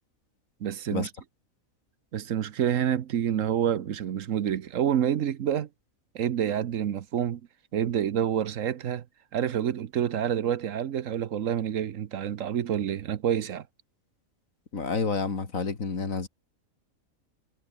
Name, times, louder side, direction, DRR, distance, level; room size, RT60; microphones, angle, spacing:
voice 1, 0.6-1.1 2.1-5.7 6.1-7.4 7.7-9.0 9.3-13.7, right 9 dB, 70° right, 1.2 m, -28 dB
voice 2, 14.7-16.3, left 4 dB, 70° left, 2.9 m, -29 dB
omnidirectional pair, 1.4 m